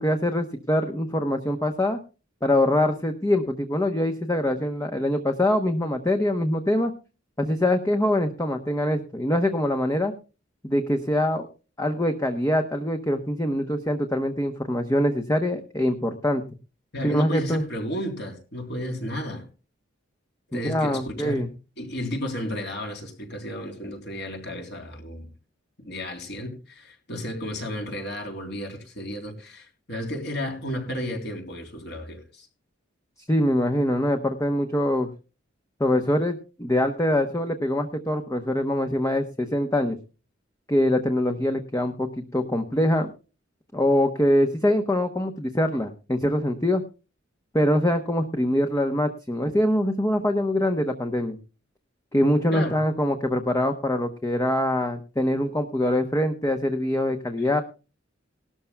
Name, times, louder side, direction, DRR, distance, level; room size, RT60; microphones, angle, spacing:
voice 1, 0.0-2.0 2.4-6.9 7.4-10.1 10.6-11.5 11.8-16.4 17.0-17.6 20.5-21.5 33.3-35.1 35.8-40.0 40.7-43.1 43.7-46.8 47.5-51.4 52.1-57.6, left 1 dB, 15° left, 0.8 m, -24 dB
voice 2, 16.9-19.4 20.5-21.4 21.8-25.3 25.8-32.5 52.5-52.8 57.4-57.5, equal, 60° left, 3.3 m, -33 dB
18.5 x 12.5 x 2.2 m
head